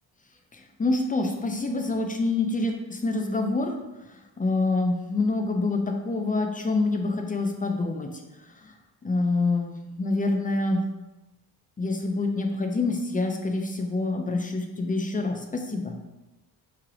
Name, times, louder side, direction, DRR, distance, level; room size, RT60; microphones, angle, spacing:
voice 1, 0.5-3.7 4.1-8.1 8.6-8.7 9.0-10.8 11.8-16.0, left 3 dB, 20° left, 4 dB, 0.5 m, -26 dB
3.2 x 2.8 x 3.7 m, 1.0 s
supercardioid pair, 70°, 45 cm